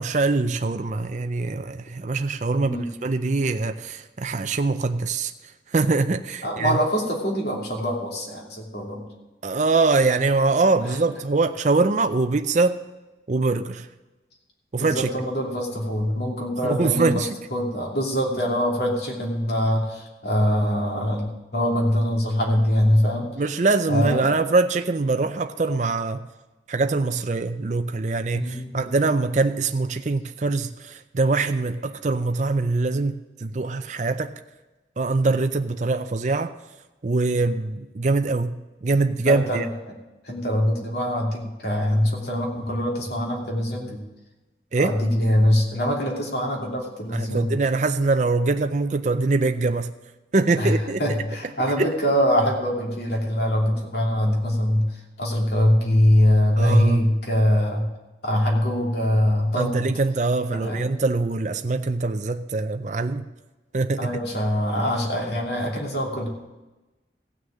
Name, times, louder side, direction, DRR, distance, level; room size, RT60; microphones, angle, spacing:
voice 1, 0.0-6.8 9.4-12.8 13.3-13.9 14.7-15.1 16.6-17.4 23.4-26.3 26.7-34.3 35.0-36.5 37.0-39.7 44.7-44.9 47.1-49.9 50.3-51.0 51.8-51.9 56.6-57.0 59.6-63.2 63.7-64.2, right 3 dB, 40° right, 8 dB, 0.5 m, -23 dB
voice 2, 6.4-9.1 14.8-17.2 17.5-23.3 23.9-24.3 28.3-28.9 39.2-39.6 40.2-44.0 44.8-47.6 50.6-57.9 58.2-59.9 60.5-60.8 64.0-66.3, equal, 60° left, -1 dB, 2.8 m, -23 dB
16.0 x 6.4 x 7.3 m, 1.1 s
head